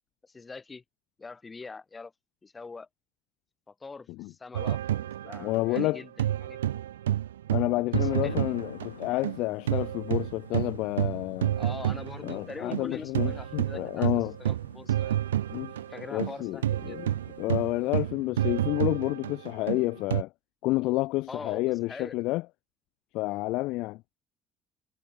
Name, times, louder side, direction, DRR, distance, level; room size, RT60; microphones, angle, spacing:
voice 1, 0.2-0.8 1.2-2.1 2.4-2.9 3.7-6.8 7.9-8.4 11.6-15.2 15.9-17.0 21.3-22.2, left 4 dB, 25° left, 4.0 m, -43 dB
sound 1, 4.5-9.4 9.7-20.2, right 12 dB, 80° right, 0.7 m, -29 dB
voice 2, 5.4-6.0 7.5-11.6 12.2-14.3 15.5-15.7 16.1-17.1 17.4-20.3 20.6-22.4 23.1-24.0, left 20 dB, 65° left, 0.5 m, -29 dB
sound 2, 7.9-18.1, left 7 dB, 85° left, 4.4 m, -44 dB
figure-of-eight pair, 55°, 0 cm